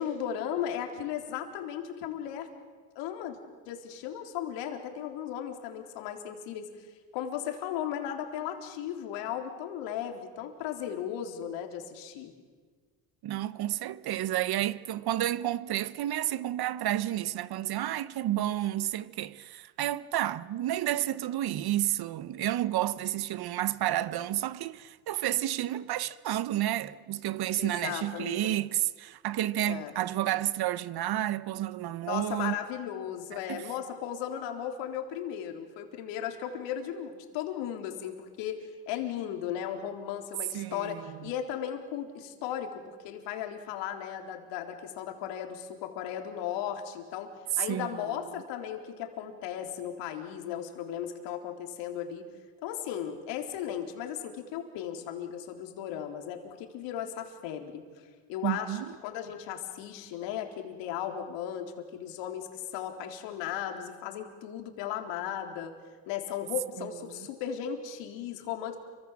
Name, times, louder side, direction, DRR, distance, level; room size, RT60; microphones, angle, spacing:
voice 1, 0.0-2.5 3.0-3.4 3.7-6.9 7.1-12.3 27.6-28.6 29.6-29.9 32.1-52.3 52.6-57.8 58.3-65.7 66.1-68.8, left 9 dB, 80° left, 4.1 m, -36 dB
voice 2, 13.2-32.5 33.5-33.7 40.5-41.3 47.6-48.2 58.4-58.9 66.8-67.2, right 13 dB, 60° right, 1.2 m, -31 dB
30.0 x 25.0 x 7.5 m
supercardioid pair, 75°, 43 cm